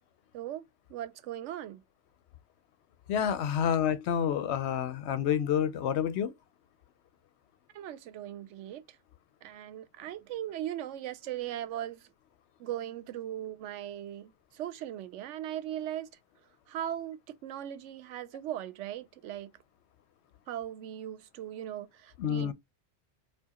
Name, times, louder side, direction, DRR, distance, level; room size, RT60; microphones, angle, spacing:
voice 1, 0.3-0.6 0.9-1.8 3.6-3.7 7.7-8.8 9.4-12.1 12.6-16.1 16.7-19.5 20.5-22.5, right 11 dB, 85° right, 0.9 m, -39 dB
voice 2, 3.1-6.3 22.2-22.5, left 8 dB, 70° left, 0.8 m, -28 dB
4.6 x 2.3 x 2.8 m
omnidirectional pair, 1.2 m